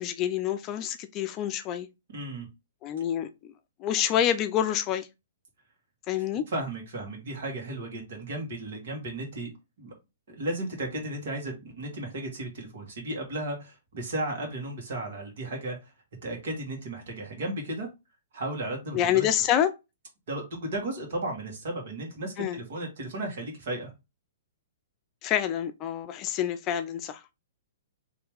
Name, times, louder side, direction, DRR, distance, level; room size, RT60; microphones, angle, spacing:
voice 1, 0.0-1.9 2.8-3.5 3.8-5.1 6.1-6.4 18.9-19.7 22.4-22.6 25.2-27.2, left 10 dB, 30° left, 0.5 m, -27 dB
voice 2, 2.1-2.5 6.3-9.5 9.8-9.9 10.3-15.9 16.2-17.9 18.3-19.3 20.3-23.9, right 1 dB, 65° right, 1.9 m, -34 dB
3.2 x 3.0 x 3.5 m
hypercardioid pair, 125°, 0 cm